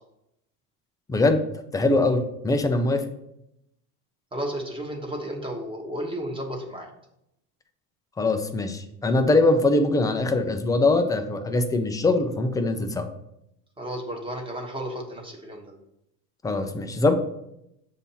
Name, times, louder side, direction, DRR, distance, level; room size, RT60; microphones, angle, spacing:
voice 1, 1.1-1.4 1.7-3.1 8.2-13.1 16.4-17.1, left 2 dB, 10° left, 6 dB, 0.4 m, -22 dB
voice 2, 4.3-6.9 13.8-15.7, equal, 10° right, 1 dB, 1.2 m, -33 dB
6.9 x 2.8 x 5.5 m, 0.81 s
supercardioid pair, 115°, 43 cm